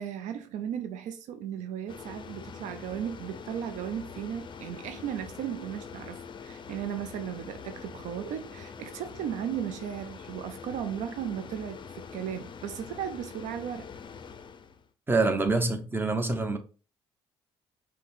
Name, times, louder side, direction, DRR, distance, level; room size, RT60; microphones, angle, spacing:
voice 1, 0.0-13.9, right 9 dB, 65° right, 0.5 m, -36 dB
sound 1, 1.9-14.9, left 6 dB, 35° left, 0.5 m, -44 dB
voice 2, 15.1-16.6, right 3 dB, 15° right, 1.0 m, -26 dB
5.2 x 2.2 x 3.9 m
hypercardioid pair, 50°, 13 cm